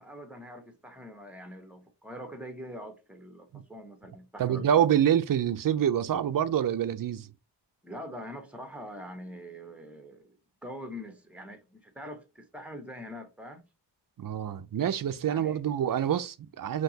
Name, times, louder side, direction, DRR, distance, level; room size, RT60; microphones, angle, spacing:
voice 1, 0.0-4.8 7.8-10.4 10.6-13.6 15.3-15.6, equal, 5° right, 1.2 m, -44 dB
voice 2, 4.4-7.3 14.2-16.8, right 9 dB, 50° right, 0.6 m, -26 dB
5.6 x 3.0 x 2.8 m
wide cardioid pair, 95°, 43 cm